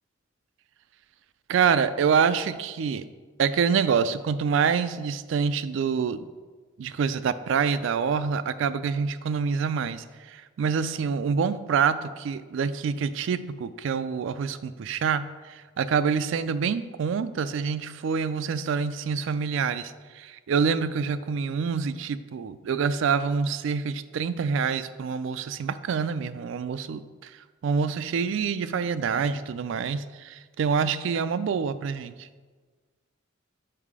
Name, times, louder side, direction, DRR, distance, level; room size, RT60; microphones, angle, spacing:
voice 1, 1.5-3.0 3.4-6.3 6.8-32.3, right 6 dB, 65° right, 14 dB, 0.3 m, -26 dB
5.6 x 4.8 x 4.8 m, 1.4 s
head